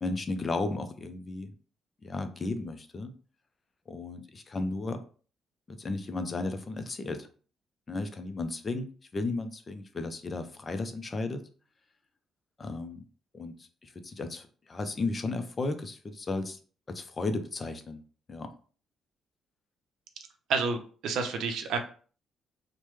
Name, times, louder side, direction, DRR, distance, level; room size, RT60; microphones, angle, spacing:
voice 1, 0.0-1.5 2.0-3.1 3.9-5.0 5.7-7.3 7.9-8.9 9.1-11.5 12.6-13.0 13.3-16.6 16.9-18.0 18.3-18.5, left 3 dB, 35° left, 8 dB, 0.4 m, -34 dB
voice 2, 21.0-21.8, right 4 dB, 80° right, 6 dB, 0.5 m, -28 dB
3.1 x 2.1 x 3.1 m, 0.40 s
cardioid pair, 90°, 0 cm